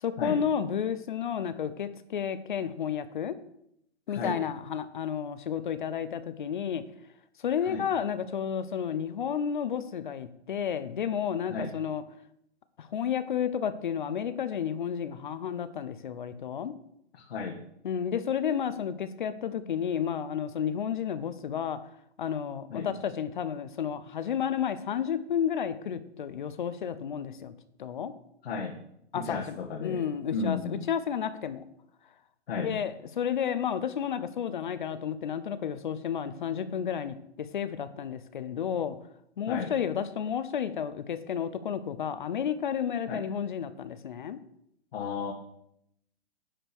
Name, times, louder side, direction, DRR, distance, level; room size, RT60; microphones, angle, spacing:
voice 1, 0.0-3.4 4.1-6.8 7.4-12.0 12.8-16.7 17.8-21.8 22.2-27.5 27.8-28.1 29.1-29.6 29.8-31.6 32.5-39.0 39.4-44.4, left 8 dB, 45° left, 13 dB, 0.7 m, -31 dB
voice 2, 4.1-4.4 7.6-7.9 11.5-11.7 17.1-17.6 22.7-22.9 28.4-28.8 29.1-30.0 30.3-30.8 32.5-32.8 39.5-39.7 43.1-43.2 44.9-45.3, left 4 dB, 60° left, 0 dB, 1.4 m, -34 dB
10.0 x 5.0 x 6.1 m, 0.74 s
hypercardioid pair, 170°, 34 cm